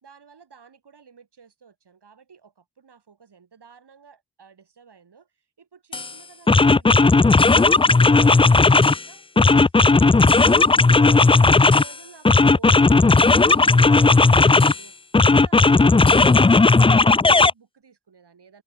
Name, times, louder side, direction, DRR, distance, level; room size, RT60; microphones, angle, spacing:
voice 1, 0.0-14.9 15.3-18.6, right 6 dB, 85° right, 4.6 m, -51 dB
sound 1, 5.9-6.1 6.5-9.0 9.4-11.9 12.3-14.8 15.1-17.5, left 3 dB, 15° left, 0.3 m, -15 dB
open air
wide cardioid pair, 90°, 39 cm